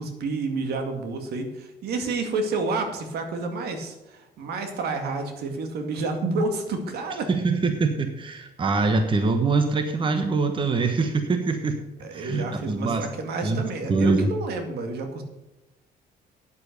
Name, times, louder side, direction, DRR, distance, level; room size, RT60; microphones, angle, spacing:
voice 1, 0.0-7.3 12.0-15.2, right 3 dB, 70° right, 5 dB, 2.2 m, -29 dB
voice 2, 7.3-11.7 12.1-13.1 13.4-14.3, right 3 dB, 30° right, 7 dB, 1.2 m, -24 dB
9.7 x 7.9 x 6.7 m, 1.0 s
cardioid pair, 110°, 17 cm